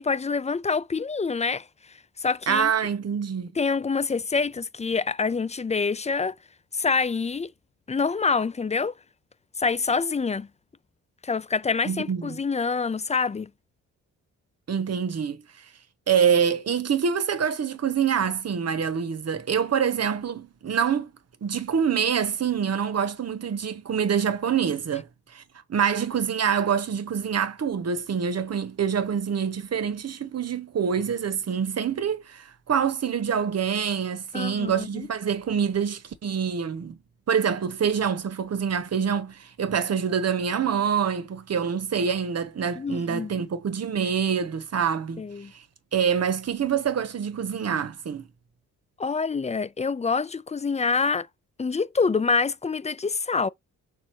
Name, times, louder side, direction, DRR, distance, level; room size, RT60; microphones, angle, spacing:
voice 1, 0.0-1.7 2.2-2.7 3.6-6.3 6.7-7.5 7.9-8.9 9.6-10.5 11.2-13.5 34.3-35.1 42.8-43.3 45.2-45.5 49.0-51.3 51.6-53.5, left 4 dB, 20° left, 0.4 m, -26 dB
voice 2, 2.5-3.5 11.8-12.4 14.7-15.4 16.1-21.1 21.4-25.1 25.3-25.4 25.7-37.0 37.3-45.2 45.5-45.6 45.9-48.2, right 7 dB, 50° right, 1.0 m, -26 dB
6.5 x 2.5 x 3.0 m
supercardioid pair, 60°, 34 cm